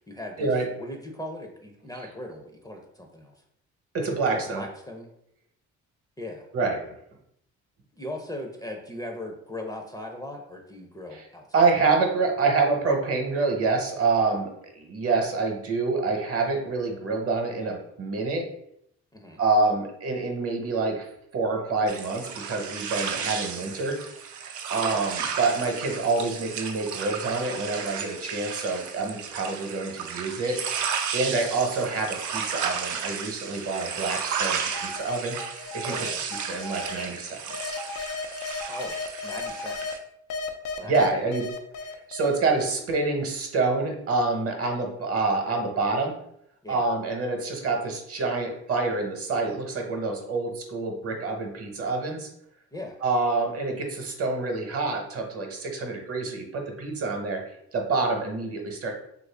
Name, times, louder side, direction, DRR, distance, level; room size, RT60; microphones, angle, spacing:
voice 1, 0.0-3.3 4.3-5.1 6.2-6.5 7.9-11.7 19.1-19.4 24.8-25.0 35.9-36.3 38.7-39.9 40.8-40.9 46.6-46.9 52.7-53.0, left 1 dB, 15° left, 2 dB, 0.5 m, -39 dB
voice 2, 3.9-4.6 6.5-6.8 11.1-11.3 11.5-18.5 19.4-21.1 21.3-24.0 24.7-30.6 31.1-36.1 36.5-37.8 40.8-41.5 42.1-46.1 46.7-52.3 53.0-57.4 57.7-58.9, right 3 dB, 50° right, 3 dB, 0.9 m, -27 dB
sound 1, 21.9-40.0, right 7 dB, 75° right, 0.5 m, -33 dB
sound 2, 34.7-37.0 37.5-39.9 40.3-42.7, left 4 dB, 90° left, 0.5 m, -35 dB
3.1 x 2.5 x 3.3 m, 0.73 s
cardioid pair, 90°, 30 cm